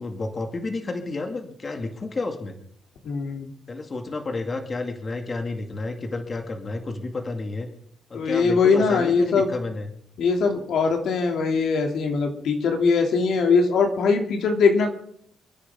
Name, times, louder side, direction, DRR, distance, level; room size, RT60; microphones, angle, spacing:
voice 1, 0.0-2.6 3.7-7.7 8.1-9.9, left 3 dB, 35° left, 4 dB, 2.3 m, -31 dB
voice 2, 3.0-3.5 8.1-9.5 10.2-14.9, left 4 dB, 70° left, 2 dB, 2.7 m, -21 dB
29.5 x 9.9 x 3.7 m, 0.65 s
cardioid pair, 90°, 0 cm